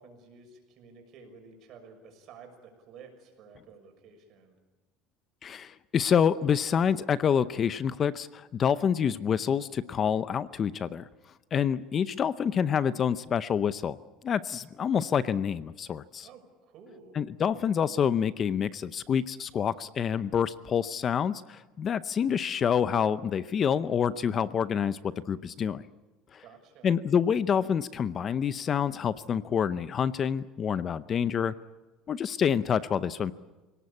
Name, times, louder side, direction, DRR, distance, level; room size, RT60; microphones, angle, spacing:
voice 1, 0.0-4.5 16.2-17.2 26.4-26.9, right 5 dB, 55° right, 5 dB, 6.3 m, -52 dB
voice 2, 5.4-11.1 11.5-14.0 14.2-16.3 17.1-25.8 26.3-26.4 26.8-31.5 32.1-33.3, left 7 dB, 35° left, 15 dB, 0.7 m, -27 dB
26.5 x 18.0 x 8.6 m, 1.2 s
cardioid pair, 125°, 0 cm